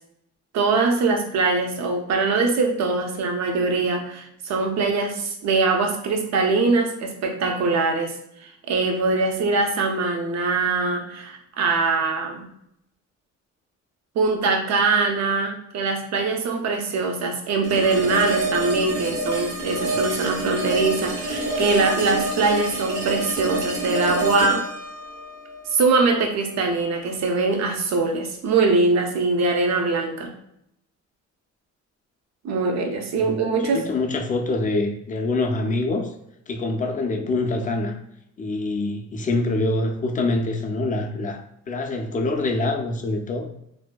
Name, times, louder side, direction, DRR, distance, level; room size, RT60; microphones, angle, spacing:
voice 1, 0.5-8.1 8.7-12.5 14.2-24.6 25.7-30.3 32.4-33.8, right 3 dB, 60° right, 3 dB, 0.6 m, -22 dB
sound 1, 17.6-26.7, right 2 dB, 80° right, 1.4 m, -27 dB
voice 2, 33.2-36.1 36.5-37.9 38.4-41.4 41.7-43.5, left 2 dB, 25° left, 3 dB, 0.4 m, -25 dB
2.6 x 2.1 x 2.2 m, 0.77 s
cardioid pair, 90°, 30 cm